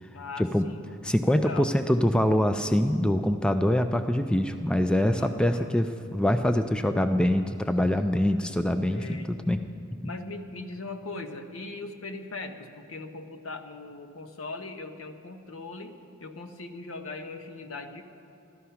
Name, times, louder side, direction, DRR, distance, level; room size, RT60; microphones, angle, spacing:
voice 1, 0.1-0.9 1.2-1.7 5.2-5.7 8.9-9.3 10.0-18.0, left 3 dB, 70° left, 6 dB, 1.0 m, -40 dB
voice 2, 1.0-9.6, left 1 dB, 5° left, 8 dB, 0.3 m, -24 dB
14.5 x 12.5 x 5.7 m, 2.6 s
head